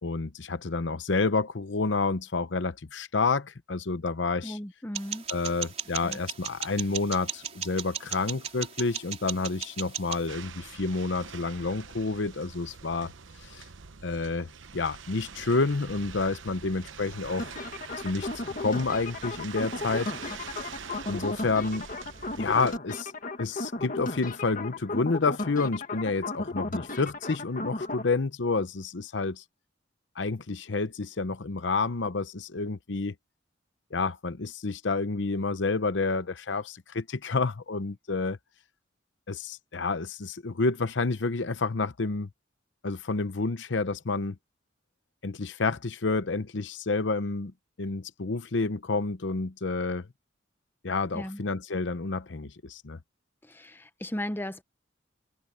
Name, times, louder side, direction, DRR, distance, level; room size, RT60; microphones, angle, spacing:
voice 1, 0.0-4.6 5.3-13.1 13.4-13.6 14.0-17.6 18.0-20.4 21.1-21.9 22.4-23.1 23.4-29.4 30.2-33.1 33.9-38.4 39.3-42.3 42.8-44.4 45.2-47.5 47.8-50.1 50.8-53.0, left 3 dB, 70° left, 0.8 m, -29 dB
voice 2, 4.4-5.3 6.0-6.2 51.1-51.4 53.4-54.6, left 1 dB, 10° left, 0.8 m, -36 dB
sound 1, 4.9-10.3, right 8 dB, 35° right, 3.2 m, -37 dB
sound 2, 10.3-22.8, right 6 dB, 85° right, 0.9 m, -44 dB
sound 3, 17.4-28.0, left 2 dB, 45° left, 1.8 m, -35 dB
head